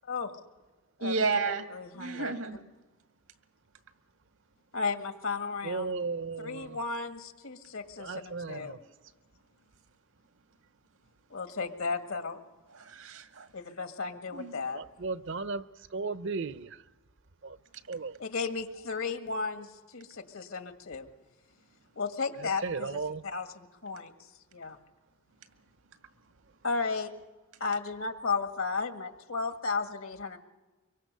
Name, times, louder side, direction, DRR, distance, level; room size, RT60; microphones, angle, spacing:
voice 1, 1.0-1.6 1.9-2.6 12.7-13.5 14.3-14.6, right 4 dB, 90° right, 2.0 m, -32 dB
voice 2, 1.7-2.3 4.7-6.0 6.4-8.8 11.3-12.4 13.5-14.8 18.2-21.1 22.0-24.1 24.5-24.8 26.6-27.1 27.6-30.4, left 4 dB, 75° left, 1.9 m, -34 dB
voice 3, 5.6-6.8 8.0-8.8 14.7-16.8 17.4-17.6 17.9-18.2 22.4-23.2, right 4 dB, 60° right, 0.7 m, -35 dB
24.0 x 23.5 x 6.8 m
head